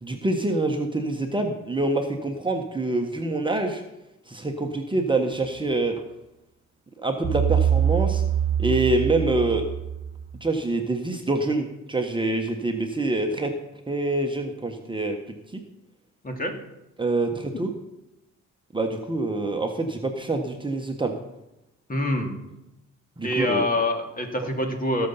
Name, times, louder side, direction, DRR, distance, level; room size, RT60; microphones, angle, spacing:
voice 1, 0.0-3.8 4.3-5.9 7.0-8.2 8.6-9.6 10.4-13.5 13.9-15.2 17.0-17.7 18.7-21.1 23.2-23.6, right 2 dB, 15° right, 3 dB, 1.3 m, -26 dB
sound 1, 7.2-10.4, right 9 dB, 45° right, 1.6 m, -24 dB
voice 2, 21.9-22.3 23.2-25.1, left 1 dB, 30° left, 3 dB, 2.5 m, -25 dB
17.0 x 6.9 x 5.7 m, 0.91 s
cardioid pair, 90°, 30 cm